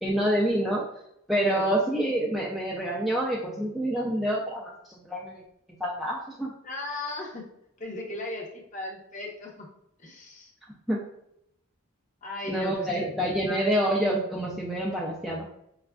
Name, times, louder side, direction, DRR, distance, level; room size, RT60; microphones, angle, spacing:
voice 1, 0.0-0.8 1.3-4.7 5.0-5.4 5.8-6.5 10.9-11.0 12.5-15.5, right 1 dB, ahead, -5 dB, 0.3 m, -27 dB
voice 2, 1.4-1.7 6.6-7.4 7.8-9.7 10.0-10.5 12.2-13.0 13.5-13.7, left 2 dB, 35° left, 0 dB, 0.7 m, -36 dB
4.9 x 2.4 x 2.2 m, 0.77 s
head